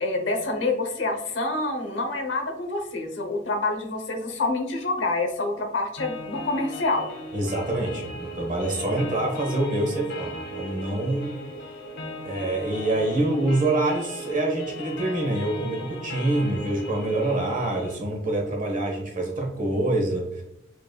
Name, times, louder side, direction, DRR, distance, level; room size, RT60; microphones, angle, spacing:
voice 1, 0.0-7.1, left 2 dB, 85° left, 5 dB, 0.8 m, -27 dB
sound 1, 6.0-18.0, equal, 60° left, 1.2 m, -37 dB
voice 2, 7.3-11.4 12.2-20.4, right 2 dB, 45° right, 0 dB, 1.1 m, -26 dB
5.1 x 3.1 x 2.2 m, 0.80 s
head